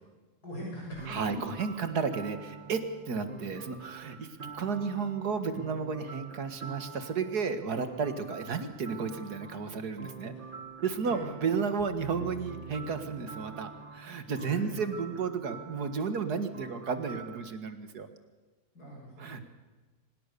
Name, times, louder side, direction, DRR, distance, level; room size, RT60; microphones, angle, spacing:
voice 1, 0.4-1.2 11.0-11.3 14.4-14.8 18.7-19.4, equal, 90° left, -3 dB, 7.6 m, -42 dB
sound 1, 0.9-17.4, right 5 dB, 35° right, 1.8 m, -46 dB
voice 2, 1.1-10.4 10.8-18.1 19.2-19.4, right 5 dB, 85° right, 10 dB, 2.3 m, -33 dB
sound 2, 11.8-14.2, right 1 dB, 45° left, 4.9 m, -47 dB
25.0 x 20.0 x 6.9 m, 1.2 s
omnidirectional pair, 1.6 m